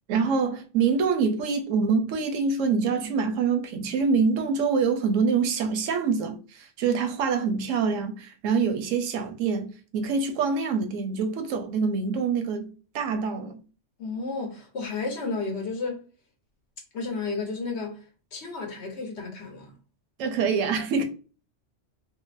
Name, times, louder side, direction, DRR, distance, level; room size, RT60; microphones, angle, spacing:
voice 1, 0.1-12.7 12.9-13.6 20.2-21.0, right 5 dB, 85° right, 1.0 m, -25 dB
voice 2, 14.0-16.0 16.9-18.0 18.3-19.7, left 3 dB, 60° left, 1.1 m, -32 dB
3.7 x 2.1 x 2.5 m
omnidirectional pair, 1.3 m